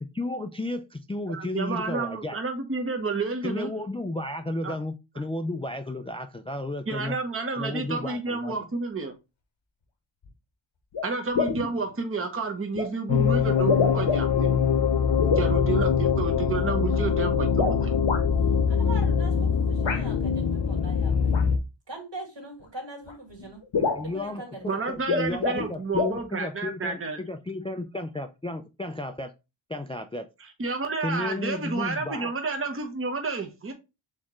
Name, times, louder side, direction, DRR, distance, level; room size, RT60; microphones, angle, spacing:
voice 1, 0.0-2.4 3.4-7.2 7.6-8.7 23.8-29.3 29.7-30.3 31.0-32.3, left 2 dB, 15° left, 0.3 m, -33 dB
voice 2, 1.3-3.7 4.6-4.8 6.9-9.1 11.0-14.6 15.4-17.9 24.7-27.2 30.6-33.7, right 4 dB, 30° right, 0.8 m, -30 dB
sound 1, 10.2-10.3 10.9-11.1 11.3-11.7 12.8-12.9 13.6-14.5 15.2-15.5 17.5-18.2 19.8-20.0 21.3-21.4 22.6-22.7 23.1-23.2 23.4-23.5 23.7-24.1 24.9-25.7 25.9-26.2, left 4 dB, 75° left, 1.1 m, -26 dB
sound 2, 13.1-21.6, left 6 dB, 55° left, 0.6 m, -23 dB
voice 3, 18.7-21.3 21.9-23.6 24.0-24.9, right 2 dB, 65° right, 1.9 m, -41 dB
4.3 x 3.5 x 3.0 m
wide cardioid pair, 55°, 47 cm